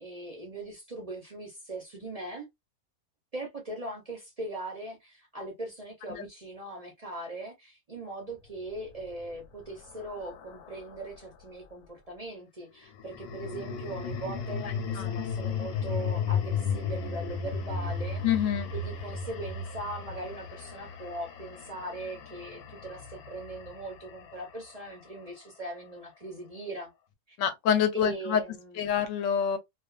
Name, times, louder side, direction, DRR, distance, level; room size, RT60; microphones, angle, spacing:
voice 1, 0.0-2.5 3.3-26.9 27.3-27.4 27.9-28.9, right 2 dB, 40° right, 0.5 m, -40 dB
sound 1, 8.8-11.3 12.9-25.2, left 5 dB, 85° left, 1.1 m, -35 dB
voice 2, 18.2-18.7 27.4-28.4 28.8-29.6, left 8 dB, 65° left, 0.9 m, -26 dB
2.4 x 2.4 x 2.2 m
omnidirectional pair, 1.6 m